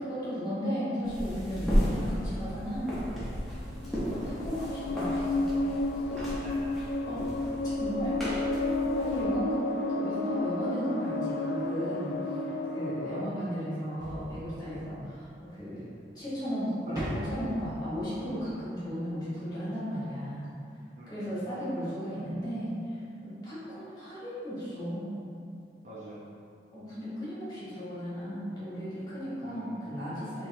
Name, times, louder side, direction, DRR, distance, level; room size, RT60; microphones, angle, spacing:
voice 1, 0.0-3.0 4.3-5.8 7.1-7.2 7.8-8.1 9.0-12.1 12.7-15.8 16.1-20.5 21.1-25.2 26.7-30.5, equal, 25° left, -11 dB, 1.4 m, -35 dB
sound 1, 1.0-9.2, equal, ahead, 0.8 m, -34 dB
sound 2, 3.8-13.3, left 2 dB, 70° left, 0.3 m, -31 dB
voice 2, 3.8-4.1 6.1-6.6 13.0-13.3 16.9-17.1 20.9-21.3 25.8-26.2 29.4-29.7, right 1 dB, 40° right, -8 dB, 0.7 m, -46 dB
sound 3, 14.0-15.5 17.0-18.9 19.2-19.3, equal, 20° right, 1.3 m, -40 dB
5.2 x 3.0 x 2.7 m, 2.5 s
head